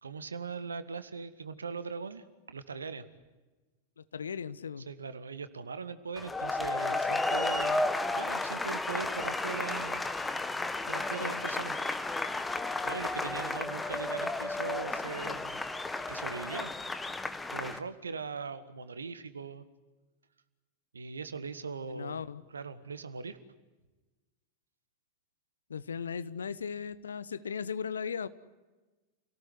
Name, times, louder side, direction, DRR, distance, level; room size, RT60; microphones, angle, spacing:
voice 1, 0.0-3.1 4.9-7.8 8.1-10.0 10.8-11.8 12.8-15.6 16.1-16.7 17.5-19.6 20.9-23.4, right 5 dB, 75° right, 12 dB, 1.7 m, -40 dB
voice 2, 4.0-4.9 11.2-11.4 21.9-22.4 25.7-28.3, left 6 dB, 70° left, 15 dB, 1.0 m, -37 dB
sound 1, 6.2-17.8, left 2 dB, 10° left, 1.5 m, -33 dB
29.0 x 18.0 x 9.7 m, 1.2 s
figure-of-eight pair, 90°, 0 cm